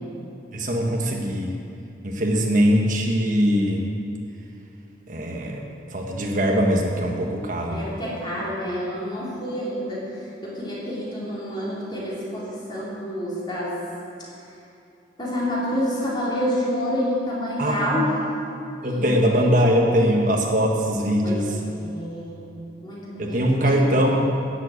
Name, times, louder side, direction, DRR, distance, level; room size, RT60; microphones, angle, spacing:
voice 1, 0.5-1.6 2.0-3.8 5.1-5.6 5.9-7.9 17.6-18.0 18.8-21.5 23.2-24.2, equal, 45° right, 0 dB, 1.3 m, -21 dB
voice 2, 7.7-10.0 10.4-13.8 15.2-18.2 18.8-19.5 21.2-22.4 22.8-23.8, equal, 25° left, -7 dB, 3.8 m, -28 dB
13.0 x 7.7 x 8.9 m, 2.7 s
head